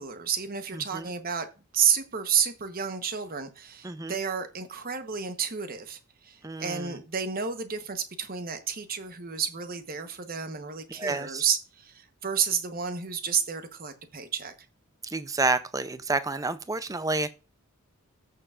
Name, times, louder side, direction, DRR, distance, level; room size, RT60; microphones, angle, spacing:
voice 1, 0.0-1.5 1.7-14.5, right 7 dB, 40° right, 1.0 m, -30 dB
voice 2, 3.8-4.2 6.4-7.0 11.0-11.5 15.0-17.3, right 3 dB, 15° right, 0.5 m, -29 dB
14.5 x 6.7 x 2.4 m
head